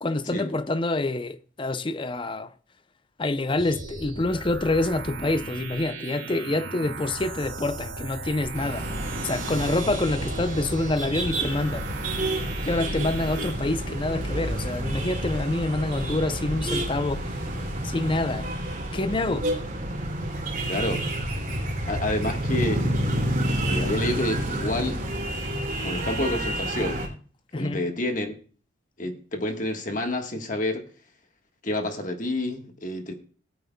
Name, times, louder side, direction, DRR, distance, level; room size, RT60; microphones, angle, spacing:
voice 1, 0.0-2.5 3.2-8.9 9.2-11.9 12.6-17.4 17.8-18.5 18.9-19.5 27.5-27.8, left 2 dB, 25° left, 0.5 m, -27 dB
sound 1, 3.6-13.5, right 3 dB, 85° right, 2.4 m, -37 dB
sound 2, 8.5-27.1, right 1 dB, 45° right, 2.8 m, -29 dB
voice 2, 20.7-21.0 21.9-23.1 23.7-25.0 25.8-27.1 27.5-28.3 29.0-30.8 31.6-33.1, left 1 dB, 40° left, 1.4 m, -29 dB
19.5 x 9.1 x 2.2 m
head